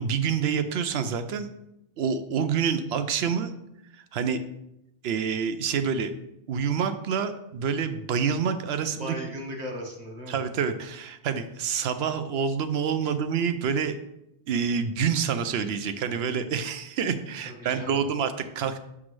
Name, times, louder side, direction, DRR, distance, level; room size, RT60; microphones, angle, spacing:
voice 1, 0.0-1.5 2.0-3.5 4.1-4.4 5.0-6.1 6.5-9.1 10.3-14.0 14.5-18.8, right 6 dB, 75° right, 10 dB, 0.8 m, -27 dB
voice 2, 9.0-10.4 13.0-13.1 17.4-18.0, equal, 40° right, 0 dB, 1.3 m, -37 dB
6.0 x 6.0 x 3.1 m, 0.83 s
omnidirectional pair, 1.1 m